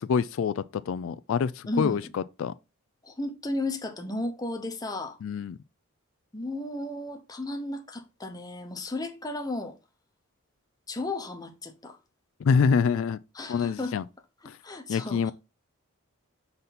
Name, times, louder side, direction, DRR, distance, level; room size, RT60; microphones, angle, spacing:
voice 1, 0.0-2.5 5.2-5.6 12.4-13.2 13.5-14.0 14.5-14.6 14.9-15.3, left 6 dB, 60° left, 0.3 m, -26 dB
voice 2, 1.7-2.0 3.0-5.2 6.3-9.8 10.9-12.0 13.3-13.9 14.4-15.3, left 2 dB, 15° left, 0.8 m, -34 dB
6.7 x 4.0 x 4.1 m
head